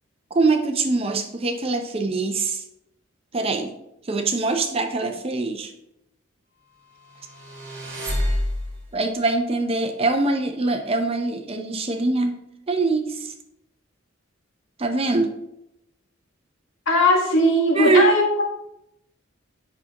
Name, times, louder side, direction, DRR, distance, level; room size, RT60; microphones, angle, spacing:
voice 1, 0.3-2.6 3.3-3.7 4.0-5.7 8.9-12.4 12.7-13.3 14.8-15.3 17.7-18.1, right 3 dB, 25° right, 6 dB, 0.6 m, -23 dB
sound 1, 7.2-9.0, left 1 dB, 45° right, 2.2 m, -27 dB
voice 2, 16.9-18.4, left 1 dB, 65° left, 0 dB, 1.6 m, -18 dB
8.5 x 5.7 x 2.9 m, 0.82 s
head